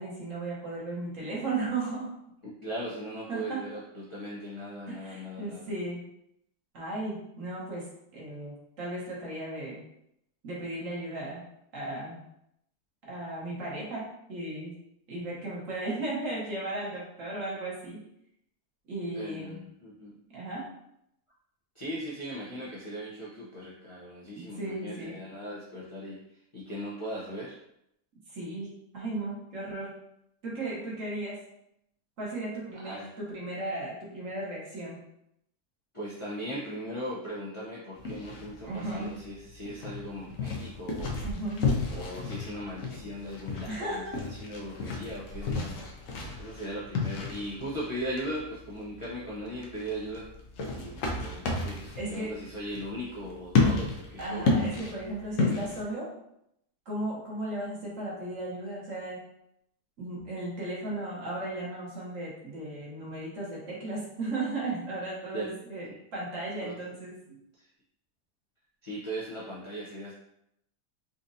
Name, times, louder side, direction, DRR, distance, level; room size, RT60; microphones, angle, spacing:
voice 1, 0.0-2.1 3.3-3.6 4.9-6.0 6.7-9.8 10.4-11.4 11.7-12.2 13.1-14.0 14.3-14.7 15.1-18.0 18.9-19.6 20.3-20.6 24.4-25.2 28.3-30.0 30.4-31.4 32.2-35.0 38.6-39.1 41.2-41.7 43.7-44.2 52.0-52.3 54.2-56.1 56.8-59.2 60.0-67.4, right 2 dB, 55° right, -6 dB, 1.4 m, -35 dB
voice 2, 2.4-5.7 19.1-20.2 21.7-27.6 32.7-33.1 35.9-41.2 41.9-45.8 46.1-50.3 50.7-54.5 65.3-65.5 65.9-66.0 66.6-66.8 67.6-67.7 68.8-70.1, equal, 45° left, -9 dB, 0.4 m, -38 dB
sound 1, 38.0-55.8, left 3 dB, 65° left, 0.8 m, -32 dB
4.1 x 2.5 x 2.6 m, 0.79 s
omnidirectional pair, 1.7 m